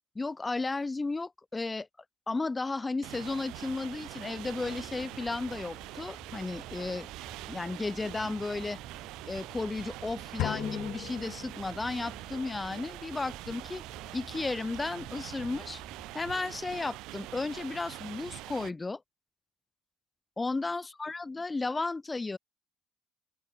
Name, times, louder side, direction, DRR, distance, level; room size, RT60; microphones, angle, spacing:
voice 1, 0.2-1.9 2.3-7.1 7.5-8.8 9.3-13.8 14.1-15.8 16.1-19.0 20.4-22.4, left 3 dB, 20° left, 0.5 m, -34 dB
sound 1, 3.0-18.7, right 19 dB, 80° right, 0.5 m, -44 dB
sound 2, 4.4-16.1, right 1 dB, 5° right, 3.8 m, -54 dB
sound 3, 10.4-12.1, left 17 dB, 75° left, 0.9 m, -37 dB
open air
cardioid pair, 100°, 0 cm